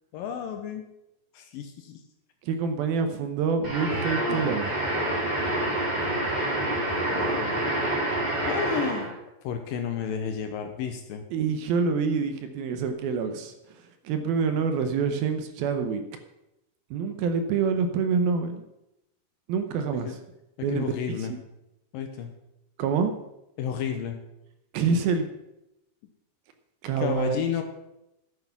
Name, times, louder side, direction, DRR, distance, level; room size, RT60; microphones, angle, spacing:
voice 1, 0.1-0.8 1.3-2.0 7.1-7.6 8.5-9.2 9.4-11.2 20.1-20.2 20.7-21.3 21.9-22.3 23.6-24.2 27.0-27.6, left 8 dB, 75° left, 6 dB, 2.3 m, -31 dB
voice 2, 2.4-4.7 11.3-16.0 16.9-18.6 19.5-20.2 20.6-21.3 22.8-23.1 24.7-25.3 26.8-27.4, right 5 dB, 75° right, 8 dB, 2.5 m, -26 dB
sound 1, 3.6-9.1, right 1 dB, 25° right, 3.3 m, -27 dB
12.0 x 8.3 x 5.9 m, 0.88 s
omnidirectional pair, 4.7 m